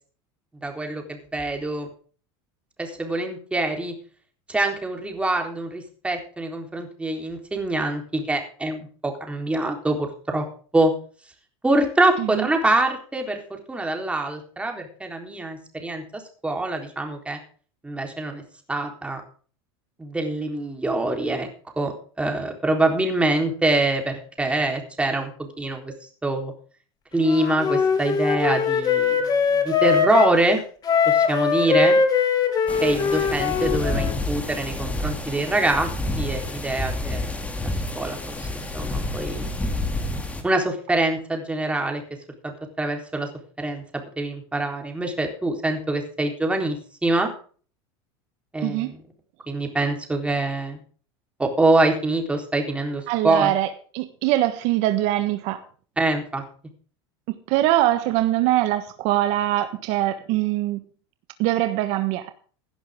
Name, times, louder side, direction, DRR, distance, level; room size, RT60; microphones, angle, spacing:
voice 1, 0.6-1.9 2.8-3.9 4.5-10.4 10.7-10.9 11.6-17.4 17.8-18.4 18.7-19.2 20.0-21.5 21.8-21.9 22.2-25.9 26.2-26.5 27.1-30.6 31.1-32.0 32.8-35.9 36.2-37.4 38.0-39.5 40.4-42.0 42.4-43.3 43.6-43.8 44.2-46.8 47.0-47.3 48.5-49.0 49.5-50.8 51.4-53.5 56.0-56.4, right 2 dB, 10° right, 3 dB, 3.8 m, -24 dB
voice 2, 12.2-12.5 48.6-48.9 53.1-53.7 53.9-55.6 57.5-60.8 61.4-62.3, right 14 dB, 60° right, 9 dB, 1.4 m, -22 dB
Wind instrument woodwind instrument, 27.2-30.4 30.8-34.2, left 6 dB, 30° left, 3.1 m, -21 dB
sound 1, 32.7-40.4, left 2 dB, 10° left, 2.7 m, -29 dB
17.0 x 11.5 x 3.7 m, 0.41 s
supercardioid pair, 125°, 13 cm